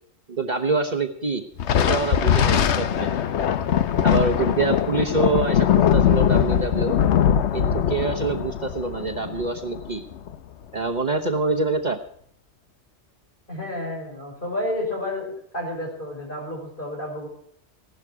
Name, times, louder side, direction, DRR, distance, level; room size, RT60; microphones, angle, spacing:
voice 1, 0.3-1.4 1.7-3.1 4.0-5.7 5.9-6.9 7.5-10.0 10.7-12.0, right 3 dB, 40° right, 4 dB, 1.1 m, -25 dB
Thunder, 1.6-10.4, left 9 dB, 75° left, 1.0 m, -21 dB
voice 2, 13.5-17.3, left 1 dB, 45° left, 0 dB, 6.3 m, -30 dB
16.5 x 12.0 x 4.8 m, 0.64 s
omnidirectional pair, 1.2 m